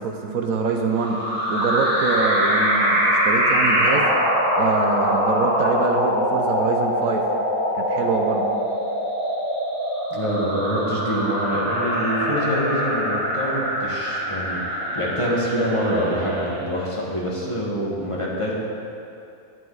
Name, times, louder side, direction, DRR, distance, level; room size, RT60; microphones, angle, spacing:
voice 1, 0.0-4.1 4.6-7.3 7.7-8.5, right 4 dB, 70° right, 3 dB, 1.1 m, -25 dB
sound 1, 0.9-16.6, equal, 45° right, 2.6 m, -23 dB
voice 2, 10.1-14.6 14.9-18.5, equal, 20° left, -5 dB, 1.5 m, -25 dB
10.5 x 9.2 x 4.0 m, 2.6 s
omnidirectional pair, 1.6 m